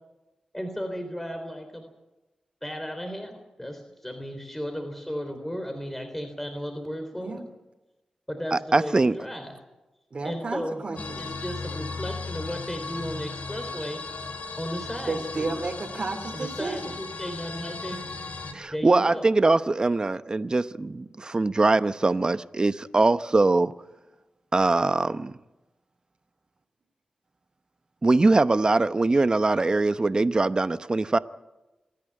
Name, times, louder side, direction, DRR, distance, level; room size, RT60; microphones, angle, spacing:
voice 1, 0.5-1.9 2.6-7.4 8.3-9.6 10.2-10.8 11.2-14.0 14.6-15.5 16.3-18.0 18.7-19.3, equal, 10° left, 4 dB, 3.6 m, -35 dB
voice 2, 8.5-9.2 18.5-23.7 24.5-25.3 28.0-31.2, right 3 dB, 35° right, 13 dB, 0.9 m, -22 dB
voice 3, 10.1-11.2 15.1-16.9, right 3 dB, 55° right, 2 dB, 2.9 m, -32 dB
sound 1, 11.0-18.5, left 4 dB, 75° left, 2.3 m, -36 dB
26.5 x 10.5 x 9.8 m, 1.0 s
cardioid pair, 60°, 2 cm